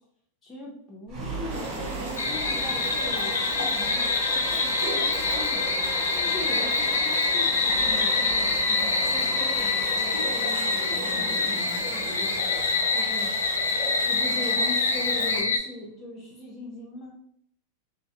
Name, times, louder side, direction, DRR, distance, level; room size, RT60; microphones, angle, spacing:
voice 1, 0.4-5.7 6.1-12.3 12.9-13.4 14.0-17.2, left 2 dB, 25° left, -4 dB, 0.7 m, -39 dB
sound 1, 1.1-13.2, right 3 dB, 40° right, 0.7 m, -37 dB
sound 2, 1.5-15.4, right 1 dB, 75° right, 0.8 m, -37 dB
sound 3, 2.2-15.6, left 4 dB, 80° left, 0.3 m, -26 dB
2.2 x 2.0 x 2.8 m, 0.66 s
hypercardioid pair, 100°, 0 cm